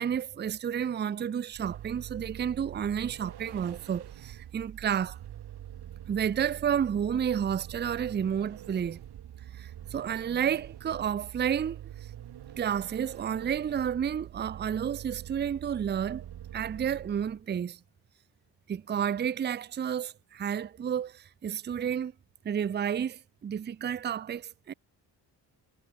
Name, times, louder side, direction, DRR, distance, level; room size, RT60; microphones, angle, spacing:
voice 1, 0.0-5.2 6.1-9.0 9.5-11.8 12.6-16.3 16.5-17.8 18.7-22.1 22.4-24.7, right 8 dB, 25° right, 0.5 m, -31 dB
Vehicle, 1.5-17.4, right 11 dB, 65° right, 3.2 m, -45 dB
cardioid pair, 130°, 42 cm